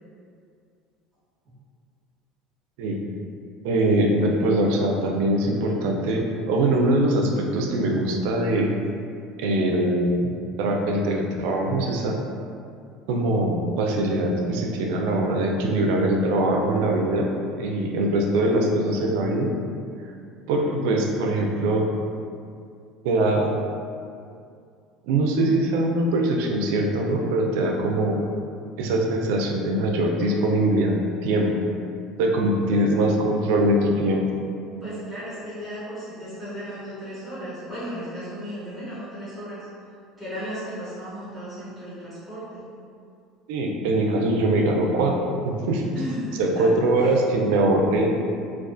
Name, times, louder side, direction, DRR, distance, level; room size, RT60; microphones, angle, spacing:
voice 1, 3.6-8.7 9.4-10.3 10.6-12.2 13.1-17.3 17.6-19.5 20.5-21.9 23.0-23.5 25.0-28.2 28.8-31.0 31.2-31.5 32.2-34.3 43.5-45.1 45.4-45.8 46.4-48.1, right 1 dB, 80° right, 1 dB, 0.3 m, -22 dB
voice 2, 34.7-39.6 40.2-42.6 45.9-46.7 47.0-47.1, equal, 20° right, -13 dB, 1.1 m, -35 dB
2.3 x 2.3 x 2.4 m, 2.4 s
cardioid pair, 130°, 0 cm